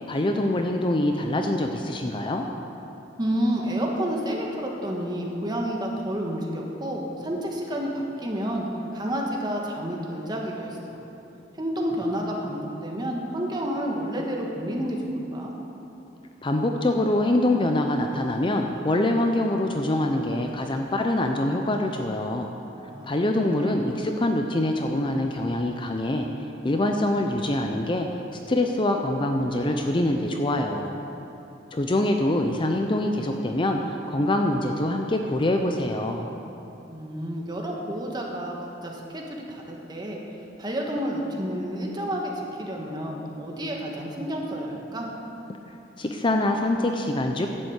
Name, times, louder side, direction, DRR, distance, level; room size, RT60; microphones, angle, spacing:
voice 1, 0.1-2.5 16.4-22.5 23.0-26.3 26.6-28.1 28.5-31.0 31.7-36.3 46.0-47.5, left 1 dB, 25° left, 4 dB, 0.6 m, -24 dB
voice 2, 3.2-8.7 8.9-11.0 11.5-15.5 22.9-23.8 36.9-40.2 40.6-45.1, equal, 25° right, -1 dB, 1.5 m, -30 dB
11.0 x 7.5 x 8.0 m, 2.9 s
head